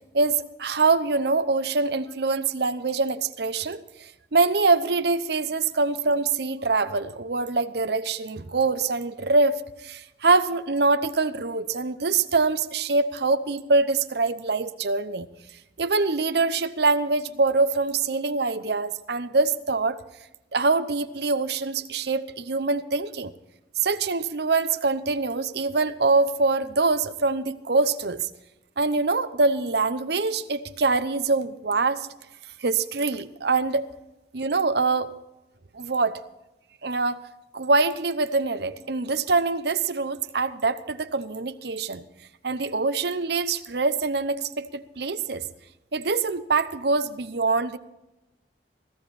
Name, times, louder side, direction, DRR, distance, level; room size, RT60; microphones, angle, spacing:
voice 1, 0.1-15.3 15.8-20.0 20.5-23.3 23.8-28.3 28.8-32.1 32.6-33.8 34.3-35.1 35.7-36.2 36.8-37.2 37.5-42.0 42.4-45.4 45.9-47.8, right 3 dB, 65° right, 12 dB, 0.9 m, -24 dB
17.5 x 15.5 x 4.2 m, 0.94 s
head